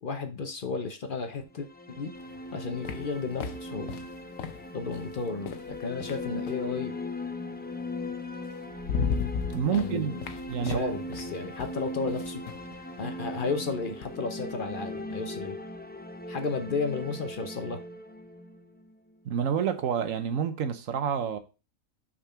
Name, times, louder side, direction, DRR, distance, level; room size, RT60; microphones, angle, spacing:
voice 1, 0.0-2.1 2.5-3.9 4.7-7.0 9.7-10.2 10.6-12.4 13.0-15.5 16.3-17.8, left 4 dB, 50° left, 0.8 m, -33 dB
sound 1, 1.5-19.4, left 2 dB, 15° left, 0.3 m, -39 dB
sound 2, 2.2-6.7 8.0-8.1 8.5-14.2, left 6 dB, 90° left, 1.1 m, -37 dB
voice 2, 9.5-10.2 10.5-11.0 19.2-21.4, right 8 dB, 80° right, 1.2 m, -28 dB
6.1 x 4.2 x 5.6 m
omnidirectional pair, 1.4 m